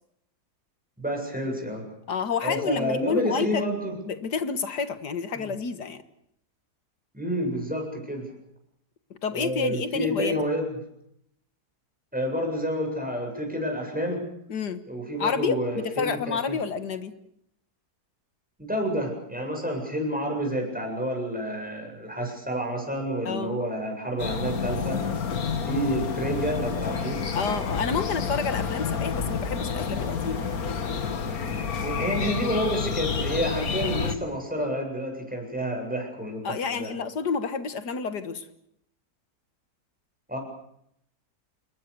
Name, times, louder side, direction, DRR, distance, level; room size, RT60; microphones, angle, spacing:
voice 1, 1.0-1.8 2.4-4.0 5.3-5.5 7.1-8.3 9.3-10.7 12.1-14.3 14.9-16.6 18.6-25.0 25.7-27.2 31.8-36.9 40.3-40.4, equal, 5° right, 2 dB, 7.6 m, -29 dB
voice 2, 2.1-3.6 4.1-6.0 9.2-10.3 14.5-14.8 15.2-17.1 23.3-23.6 27.3-30.4 36.4-38.5, left 5 dB, 85° left, 10 dB, 2.1 m, -29 dB
sound 1, 24.2-34.2, left 6 dB, 60° left, 2.0 m, -29 dB
28.0 x 21.5 x 6.9 m, 0.76 s
omnidirectional pair, 1.7 m